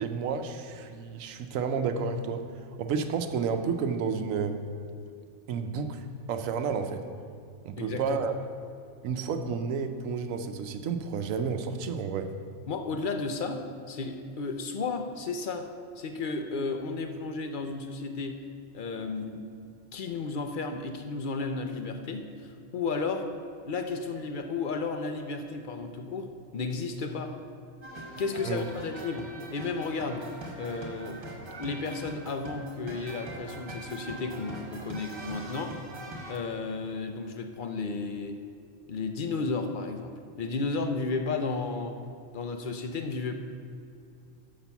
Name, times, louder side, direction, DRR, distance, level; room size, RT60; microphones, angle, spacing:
voice 1, 0.0-2.5 2.8-4.6 5.5-7.0 7.6-8.3 9.0-12.3 28.4-28.6, right 5 dB, 80° right, 8 dB, 1.0 m, -31 dB
voice 2, 7.8-8.2 12.7-15.7 16.0-18.4 18.7-19.5 19.9-23.3 23.7-27.3 28.2-30.3 30.5-31.3 31.6-35.8 36.3-38.4 38.9-42.0 42.3-43.3, left 4 dB, 55° left, 6 dB, 0.6 m, -33 dB
sound 1, 27.8-36.4, right 1 dB, 45° right, 1.4 m, -42 dB
6.6 x 5.9 x 6.9 m, 2.4 s
omnidirectional pair, 1.4 m